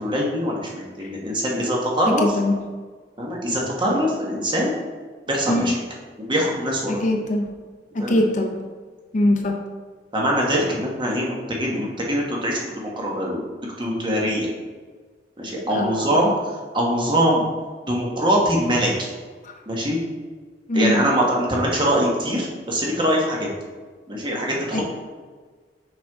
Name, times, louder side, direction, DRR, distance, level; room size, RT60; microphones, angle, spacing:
voice 1, 0.0-2.2 3.2-4.7 5.3-5.7 6.2-7.0 8.0-8.2 10.1-13.4 13.8-14.5 15.4-16.3 16.7-17.5 17.9-19.1 19.7-20.0 20.7-23.5 24.1-24.8, equal, 30° right, -2 dB, 1.3 m, -23 dB
voice 2, 2.1-2.6 5.5-5.7 6.9-7.5 7.9-8.6 9.1-9.6 15.7-16.2 19.4-19.5 20.7-21.0 24.7-24.8, left 1 dB, 45° left, 3 dB, 0.6 m, -22 dB
6.0 x 5.4 x 3.6 m, 1.5 s
head